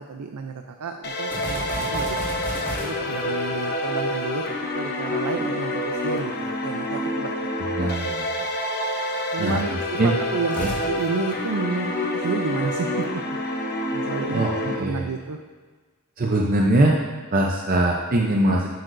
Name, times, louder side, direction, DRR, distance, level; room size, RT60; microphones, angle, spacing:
voice 1, 0.0-2.2 2.7-4.4 4.8-7.3 7.8-8.5 9.3-13.2 13.9-15.4, right 4 dB, 80° right, 5 dB, 0.5 m, -31 dB
sound 1, 1.0-14.8, left 1 dB, 45° left, 0.9 m, -28 dB
sound 2, 1.3-4.7 10.4-12.5, left 1 dB, 10° left, 1.8 m, -35 dB
voice 2, 7.6-8.3 9.4-10.1 10.6-10.7 14.3-15.1 16.2-17.0 17.3-18.7, right 1 dB, 40° right, -1 dB, 0.7 m, -22 dB
11.0 x 8.1 x 2.6 m, 1.4 s
head